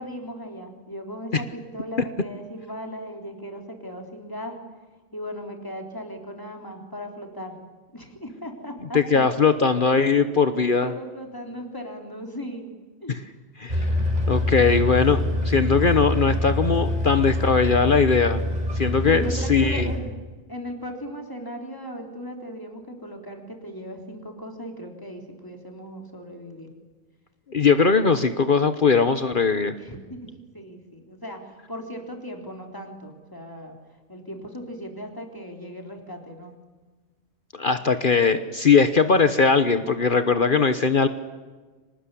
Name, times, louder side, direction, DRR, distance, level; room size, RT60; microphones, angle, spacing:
voice 1, 0.0-4.6 5.1-7.6 7.9-9.2 10.8-12.7 13.0-13.2 19.0-20.1 20.5-26.7 29.7-33.8 34.1-36.5, equal, 20° left, 2 dB, 3.7 m, -37 dB
voice 2, 8.9-10.9 13.1-13.2 13.6-13.9 14.3-18.4 18.8-19.9 27.5-29.7 37.5-41.1, left 5 dB, 50° left, 10 dB, 1.2 m, -20 dB
sound 1, 13.7-20.0, left 1 dB, 35° right, 4.9 m, -25 dB
25.5 x 19.0 x 9.9 m, 1.3 s
omnidirectional pair, 1.2 m